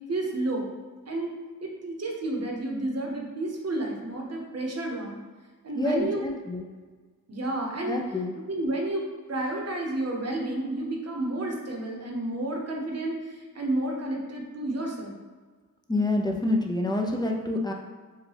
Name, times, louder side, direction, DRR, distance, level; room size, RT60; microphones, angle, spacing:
voice 1, 0.1-0.7 1.1-1.3 1.6-5.2 5.6-6.2 7.3-8.0 8.5-15.1, right 2 dB, 50° right, 0 dB, 0.8 m, -31 dB
voice 2, 5.8-6.7 7.9-8.3 15.9-17.7, left 2 dB, 15° left, 0 dB, 0.4 m, -27 dB
4.6 x 2.3 x 3.3 m, 1.4 s
wide cardioid pair, 90°, 34 cm